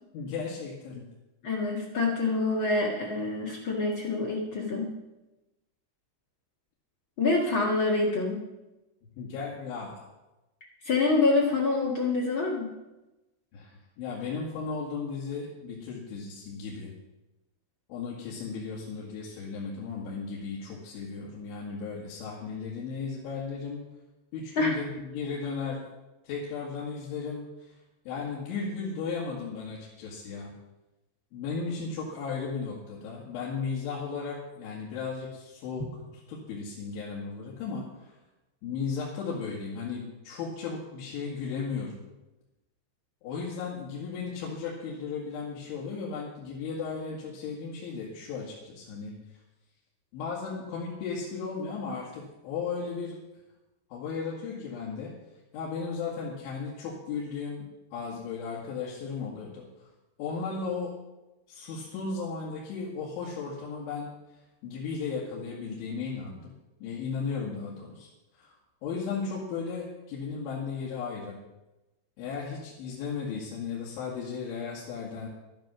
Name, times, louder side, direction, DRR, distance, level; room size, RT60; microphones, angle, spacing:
voice 1, 0.1-1.1 9.2-10.0 13.5-16.9 17.9-23.8 24.3-25.9 26.2-27.7 28.1-30.5 31.3-35.9 36.3-38.1 38.6-42.0 43.2-49.2 50.1-53.2 53.9-55.1 55.5-59.9 60.2-60.9 61.5-64.1 64.6-66.5 66.8-68.1 68.4-71.4 72.2-75.3, left 5 dB, 80° left, -5 dB, 4.3 m, -35 dB
voice 2, 1.4-4.9 7.2-8.4 10.8-12.7 24.5-24.8, left 3 dB, 60° left, -3 dB, 1.3 m, -26 dB
12.0 x 11.0 x 6.1 m, 1.0 s
omnidirectional pair, 5.4 m